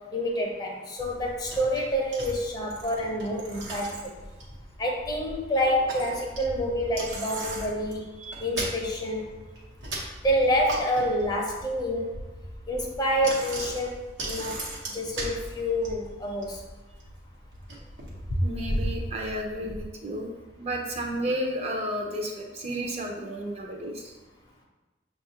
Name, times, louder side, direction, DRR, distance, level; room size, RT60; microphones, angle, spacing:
voice 1, 0.1-4.1 4.8-8.0 8.4-9.2 10.2-12.1 12.7-14.6 14.9-16.6, equal, 25° left, -1 dB, 0.6 m, -27 dB
Bicycle, 1.0-19.8, right 1 dB, 90° right, 0.9 m, -37 dB
voice 2, 18.4-20.3 20.6-24.1, equal, 35° right, 1 dB, 0.5 m, -32 dB
6.2 x 2.4 x 2.8 m, 1.2 s
head